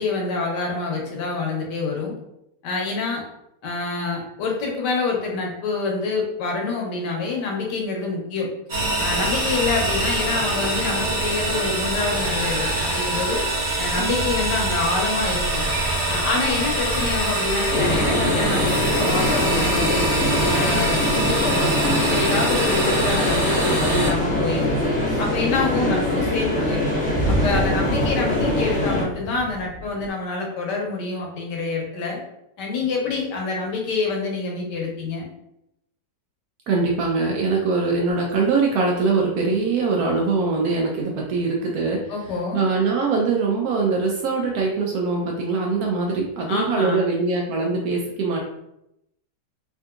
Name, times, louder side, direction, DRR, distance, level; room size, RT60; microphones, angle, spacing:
voice 1, 0.0-2.1 2.6-3.2 3.6-8.5 9.0-13.4 13.8-15.6 16.1-20.1 20.4-24.7 25.2-26.9 27.3-32.2 32.6-35.3 42.1-42.6 46.5-47.1, left 3 dB, 75° left, 0 dB, 1.3 m, -26 dB
sound 1, 8.7-24.1, right 1 dB, 40° right, 0.8 m, -24 dB
sound 2, 17.7-29.0, left 1 dB, 5° left, 1.1 m, -23 dB
sound 3, 23.9-30.1, right 1 dB, 50° left, 0.4 m, -31 dB
voice 2, 25.9-26.2 36.7-42.0 42.5-48.4, right 4 dB, 70° right, -1 dB, 0.9 m, -22 dB
3.6 x 2.6 x 2.4 m, 0.82 s
omnidirectional pair, 1.9 m